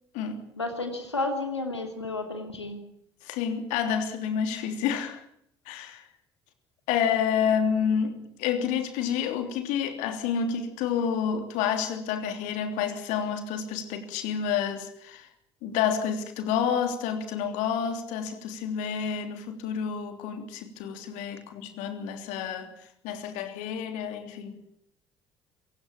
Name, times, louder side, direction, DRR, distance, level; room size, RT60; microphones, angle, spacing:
voice 1, 0.6-2.8, left 2 dB, 90° left, 5 dB, 2.8 m, -31 dB
voice 2, 3.2-5.2 5.6-6.1 6.9-15.3 15.6-24.6, left 7 dB, 65° left, 7 dB, 3.2 m, -29 dB
27.0 x 17.0 x 8.8 m, 0.72 s
figure-of-eight pair, 50°, 14 cm